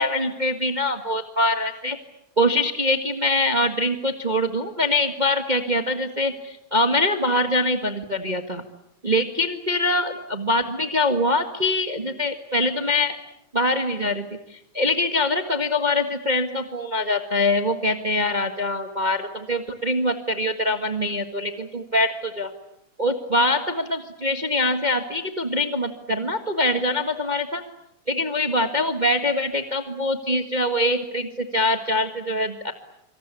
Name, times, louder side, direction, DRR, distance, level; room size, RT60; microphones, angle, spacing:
voice 1, 0.0-2.0 2.4-8.6 9.0-13.2 13.5-14.2 14.5-22.5 23.0-27.6 28.1-32.7, left 1 dB, 20° right, 6 dB, 1.3 m, -23 dB
27.0 x 26.0 x 8.4 m, 0.78 s
omnidirectional pair, 3.3 m